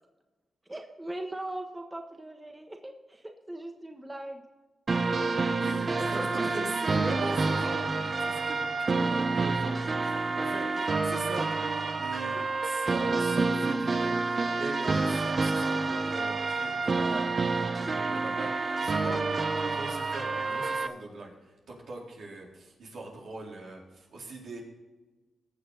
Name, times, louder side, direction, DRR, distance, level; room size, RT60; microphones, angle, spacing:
voice 1, 0.6-4.4, right 1 dB, 20° right, 4 dB, 1.3 m, -40 dB
sound 1, 4.9-20.9, right 3 dB, 45° right, 0.9 m, -28 dB
voice 2, 5.6-24.6, right 2 dB, 75° right, -3 dB, 3.9 m, -40 dB
18.5 x 6.8 x 4.0 m, 1.2 s
cardioid pair, 65°, 0 cm